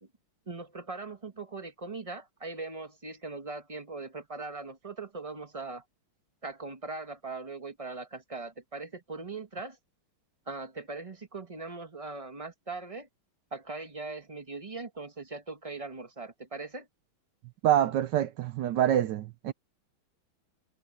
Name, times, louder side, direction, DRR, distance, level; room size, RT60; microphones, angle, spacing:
voice 1, 0.5-5.8 6.4-9.7 10.5-13.1 13.5-16.8, right 3 dB, 20° right, 1.1 m, -40 dB
voice 2, 17.6-19.5, right 11 dB, 75° right, 1.1 m, -26 dB
omnidirectional pair, 2.3 m